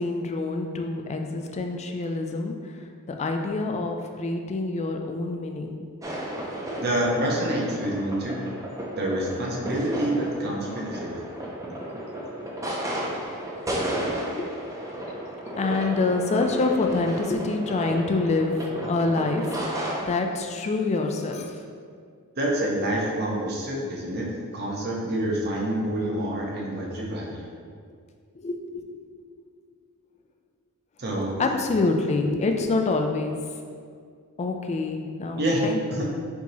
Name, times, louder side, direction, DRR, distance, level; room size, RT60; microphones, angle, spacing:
voice 1, 0.0-2.5 3.1-5.8 13.7-14.0 14.6-14.7 15.6-19.6 20.0-21.5 28.4-28.8 31.4-33.4 34.4-36.1, left 3 dB, 30° left, 3 dB, 0.3 m, -26 dB
sound 1, 6.0-20.1, right 1 dB, 15° right, 0.6 m, -33 dB
voice 2, 6.8-8.4 9.0-11.3 22.4-27.4 31.0-31.5 35.4-35.6 35.9-36.2, right 1 dB, 45° right, -2 dB, 0.8 m, -27 dB
4.6 x 2.8 x 4.0 m, 2.1 s
head